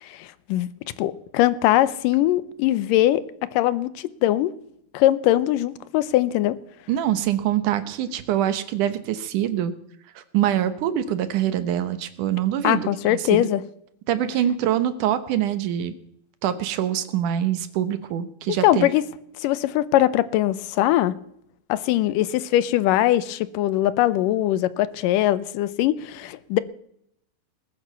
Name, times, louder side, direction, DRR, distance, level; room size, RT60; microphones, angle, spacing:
voice 1, 0.0-0.7 1.0-3.2 3.5-4.5 4.9-6.6 12.6-13.6 18.6-19.0 19.4-21.1 21.7-26.6, left 14 dB, 85° left, 2.4 m, -21 dB
voice 2, 6.9-9.7 10.2-13.5 14.1-15.9 16.4-18.9, right 11 dB, 75° right, 2.4 m, -24 dB
19.5 x 9.2 x 6.9 m
omnidirectional pair, 3.8 m